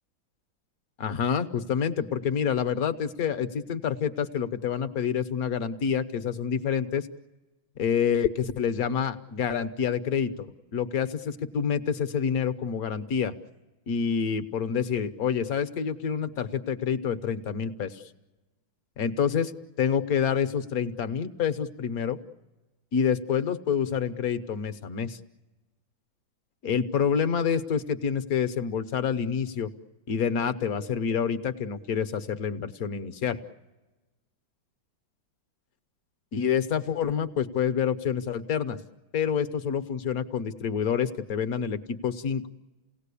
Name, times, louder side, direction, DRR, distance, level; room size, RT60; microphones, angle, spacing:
voice 1, 1.0-7.1 7.8-13.3 13.9-18.0 19.0-19.5 19.8-22.2 22.9-25.2 26.6-29.7 30.1-33.4 36.3-38.8 39.1-42.5, left 7 dB, 55° left, 10 dB, 1.3 m, -27 dB
29.0 x 18.0 x 8.4 m, 1.1 s
omnidirectional pair, 2.1 m